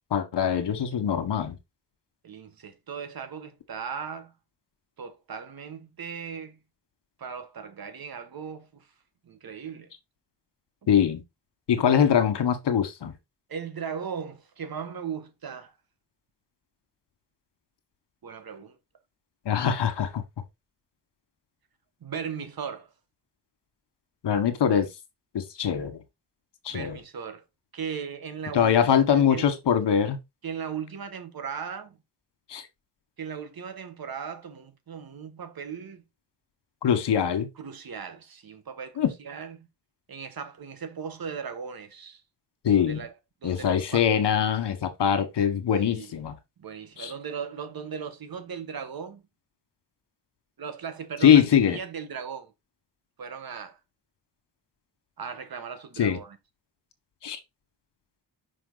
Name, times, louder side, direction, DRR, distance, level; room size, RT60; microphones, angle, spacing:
voice 1, 0.1-1.6 10.9-11.2 11.7-13.1 19.4-20.2 24.2-24.9 25.3-26.0 26.6-27.0 28.5-30.2 32.5-32.6 36.8-37.5 39.0-39.1 42.6-43.0 43.4-46.4 47.0-47.1 51.2-51.8 56.0-56.2 57.2-57.4, left 8 dB, 70° left, 1.5 m, -23 dB
voice 2, 2.2-4.3 5.0-6.6 7.2-8.9 9.2-9.9 13.5-15.7 18.2-18.7 22.0-22.9 26.7-27.4 27.7-29.5 30.4-32.0 33.2-36.0 37.6-39.7 40.1-42.2 42.7-43.1 43.4-44.1 45.8-46.1 46.6-49.2 50.6-52.5 53.2-53.8 55.2-56.4, right 6 dB, 55° right, 1.5 m, -37 dB
5.5 x 5.2 x 4.0 m
cardioid pair, 80°, 42 cm